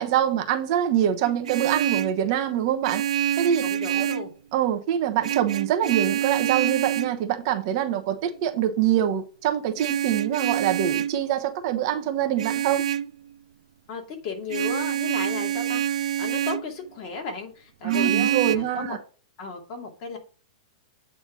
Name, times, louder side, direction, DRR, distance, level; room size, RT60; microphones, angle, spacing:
voice 1, 0.0-3.0 3.4-3.6 3.9-4.1 4.5-12.8 17.8-19.0, right 10 dB, 45° right, 1.1 m, -24 dB
Vehicle horn car horn honking, 1.2-2.2 2.8-4.3 5.2-7.2 9.8-11.2 12.4-13.1 14.5-16.7 17.9-18.6, right 10 dB, 90° right, 0.4 m, -26 dB
voice 2, 3.6-4.3 13.9-19.0 19.4-20.2, left 4 dB, 40° left, 2.5 m, -35 dB
8.4 x 3.4 x 6.2 m
hypercardioid pair, 150°, 4 cm